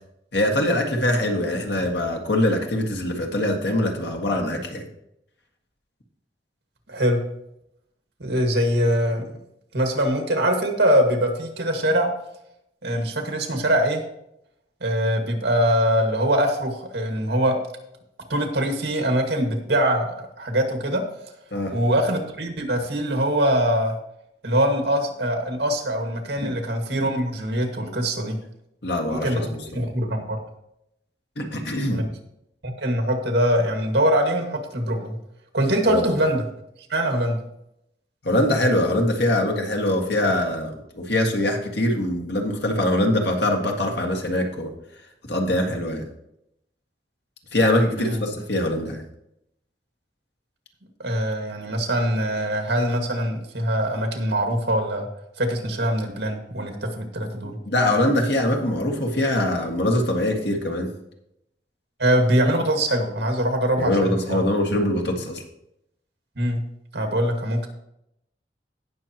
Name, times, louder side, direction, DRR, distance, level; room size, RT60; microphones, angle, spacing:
voice 1, 0.3-4.8 21.5-21.8 28.8-29.4 29.7-29.8 31.3-32.0 35.9-36.1 38.2-44.7 45.3-46.1 47.5-49.0 57.4-60.9 63.8-65.4, left 1 dB, 70° left, 2 dB, 1.8 m, -23 dB
voice 2, 6.9-7.2 8.2-9.3 9.7-12.1 12.8-14.0 14.8-17.6 18.3-21.0 21.7-23.9 24.4-28.4 29.1-30.4 31.9-32.0 32.6-35.2 35.5-36.4 36.9-37.4 48.0-48.2 51.0-55.1 55.4-57.6 62.0-64.4 66.4-66.6 66.9-67.7, equal, 75° right, 3 dB, 2.0 m, -23 dB
17.5 x 6.5 x 3.0 m, 0.79 s
head